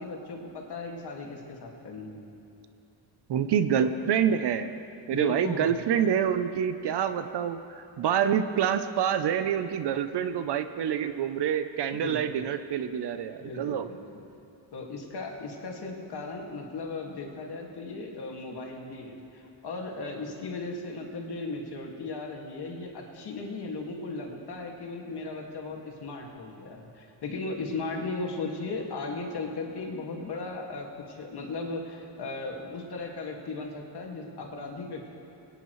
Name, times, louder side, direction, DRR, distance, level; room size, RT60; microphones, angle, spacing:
voice 1, 0.0-2.3 3.8-3.9 5.1-5.8 11.9-12.4 13.4-14.0 14.7-35.1, left 3 dB, 60° left, 0 dB, 2.1 m, -37 dB
voice 2, 3.3-4.8 5.1-13.9, right 8 dB, 65° right, 11 dB, 0.7 m, -27 dB
22.0 x 9.9 x 3.1 m, 2.7 s
cardioid pair, 80°, 45 cm